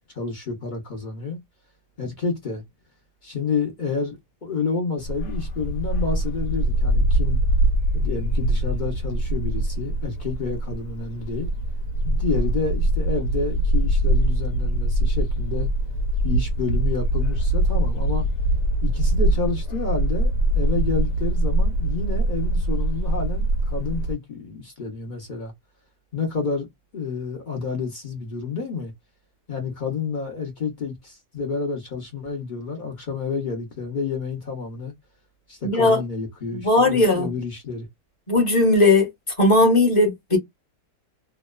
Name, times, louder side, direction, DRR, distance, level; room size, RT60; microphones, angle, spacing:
voice 1, 0.1-1.4 2.0-2.6 3.2-7.4 7.9-11.5 12.0-15.7 16.2-18.3 18.8-25.5 26.1-26.7 26.9-28.9 29.5-34.9 35.5-37.9, left 4 dB, 55° left, 0.5 m, -29 dB
Bark, 5.0-24.1, right 1 dB, 75° left, 1.1 m, -23 dB
voice 2, 35.6-36.0 36.5-37.3 38.3-39.1 39.4-40.4, left 2 dB, 25° left, 0.8 m, -17 dB
2.8 x 2.2 x 2.2 m
omnidirectional pair, 2.0 m